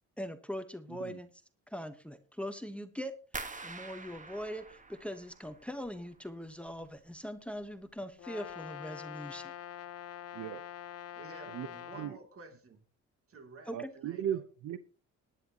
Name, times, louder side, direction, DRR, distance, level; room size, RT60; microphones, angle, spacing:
voice 1, 0.2-1.3 1.7-3.1 3.6-9.5 13.7-13.9, equal, 5° left, 1.1 m, -41 dB
sound 1, 3.3-6.2 6.5-7.2 7.6-8.0 8.4-8.5, right 3 dB, 25° right, 1.4 m, -46 dB
Brass instrument, 8.2-12.2, left 10 dB, 55° left, 0.9 m, -45 dB
voice 2, 11.1-12.8 13.3-14.4, right 4 dB, 50° right, 2.8 m, -52 dB
voice 3, 13.7-14.8, right 10 dB, 80° right, 0.8 m, -37 dB
19.0 x 10.0 x 2.9 m
cardioid pair, 90°, 30 cm